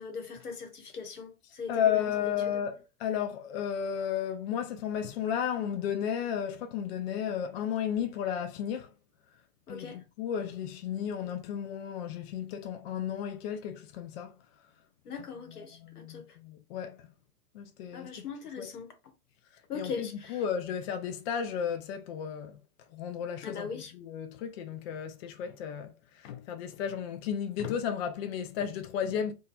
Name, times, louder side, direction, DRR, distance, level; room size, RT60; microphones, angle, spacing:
voice 1, 0.0-2.6 9.7-10.0 15.0-16.2 17.9-18.9 19.7-20.4 23.4-23.9, left 5 dB, 90° left, 1.0 m, -40 dB
voice 2, 1.7-8.9 9.7-14.3 15.5-17.0 17.5-18.3 18.6-18.7 19.7-22.6 22.9-29.3, left 8 dB, 45° left, 0.4 m, -33 dB
2.6 x 2.3 x 2.5 m
hypercardioid pair, 115°, 44 cm